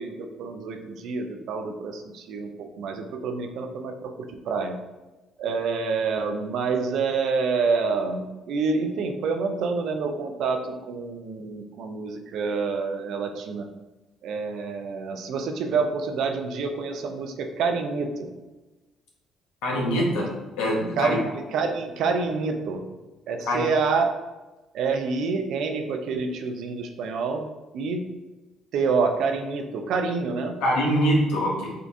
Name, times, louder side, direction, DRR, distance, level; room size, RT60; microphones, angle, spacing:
voice 1, 0.0-4.1 4.5-4.8 5.4-13.7 14.2-18.3 19.7-20.2 21.0-22.9 23.3-24.1 24.7-27.4 27.7-28.1 28.7-30.6, right 4 dB, 75° right, 5 dB, 0.5 m, -27 dB
voice 2, 19.6-20.3 20.6-21.2 23.5-23.6 30.6-31.7, equal, 90° left, -3 dB, 1.1 m, -23 dB
3.8 x 2.4 x 3.4 m, 1.1 s
supercardioid pair, 75°, 0 cm